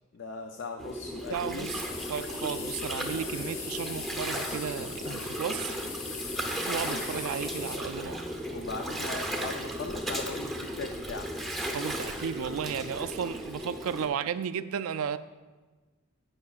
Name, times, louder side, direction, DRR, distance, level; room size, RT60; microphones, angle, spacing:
voice 1, 0.1-1.8 5.0-5.4 6.9-7.0 8.5-11.3, left 4 dB, 55° left, 4 dB, 0.4 m, -39 dB
Gurgling, 0.8-14.1, equal, ahead, 0.7 m, -35 dB
voice 2, 1.3-1.8 2.1-5.8 6.7-8.2 11.7-15.2, right 7 dB, 75° right, 12 dB, 0.3 m, -34 dB
sound 1, 1.7-7.8, left 5 dB, 75° left, 1.2 m, -40 dB
16.5 x 5.7 x 2.4 m, 1.3 s
head